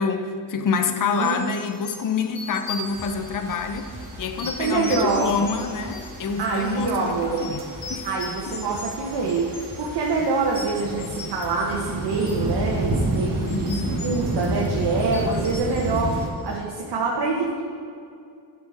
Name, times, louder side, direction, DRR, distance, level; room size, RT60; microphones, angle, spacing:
voice 1, 0.0-7.6 7.9-8.1 11.0-11.2 13.4-14.0, left 5 dB, 50° left, 7 dB, 0.7 m, -27 dB
sound 1, 1.0-16.8, left 2 dB, 90° left, 1.9 m, -40 dB
voice 2, 1.1-1.5 4.6-5.3 6.4-7.4 8.0-9.5 9.8-16.1 16.4-17.6, right 3 dB, 75° right, -2 dB, 1.2 m, -25 dB
sound 2, 2.8-16.3, right 1 dB, 55° right, 1.7 m, -31 dB
sound 3, 3.0-3.1 3.5-3.6 3.9-4.1 4.4-4.6 4.9-5.0 5.4-5.5 5.9-6.0 6.3-6.5 6.8-7.0 7.3-7.4 7.8-7.9 8.3-8.4 8.7-8.9 9.2-9.4 9.7-9.8 10.2-10.3, left 1 dB, 10° left, 0.6 m, -42 dB
11.0 x 4.3 x 4.9 m, 2.4 s
wide cardioid pair, 130°, 41 cm